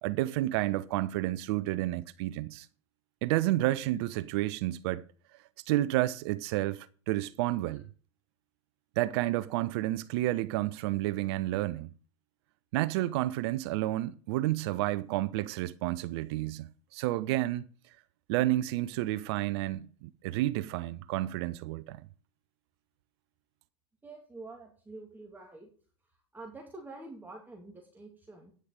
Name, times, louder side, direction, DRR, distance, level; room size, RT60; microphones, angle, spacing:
voice 1, 0.0-2.7 3.2-5.0 5.7-7.8 9.0-11.9 12.7-17.6 18.3-22.0, right 16 dB, 60° right, 0.7 m, -30 dB
voice 2, 24.0-25.7 26.3-28.5, right 2 dB, 10° right, 2.6 m, -47 dB
9.7 x 6.6 x 6.5 m
hypercardioid pair, 95°, 15 cm